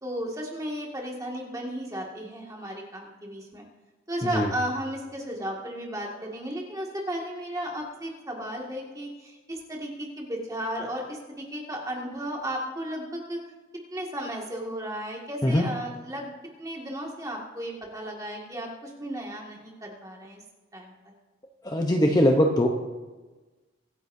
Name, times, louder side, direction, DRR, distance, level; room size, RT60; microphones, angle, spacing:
voice 1, 0.0-3.6 4.1-13.4 13.9-16.3 16.6-20.4 20.7-21.1, equal, 15° right, -1 dB, 2.0 m, -34 dB
voice 2, 21.6-22.7, equal, 20° left, 2 dB, 0.8 m, -21 dB
24.5 x 9.6 x 2.7 m, 1.2 s
head